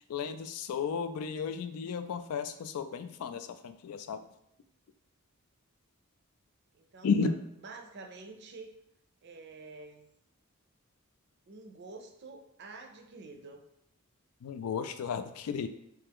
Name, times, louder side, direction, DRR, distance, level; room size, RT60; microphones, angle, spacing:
voice 1, 0.1-4.2 7.0-7.3 14.4-15.7, left 5 dB, 80° left, 10 dB, 0.3 m, -33 dB
voice 2, 6.7-7.4 7.6-8.7 9.2-10.1 11.5-13.6, right 3 dB, 50° right, 5 dB, 0.5 m, -48 dB
3.4 x 3.3 x 3.4 m, 0.77 s
head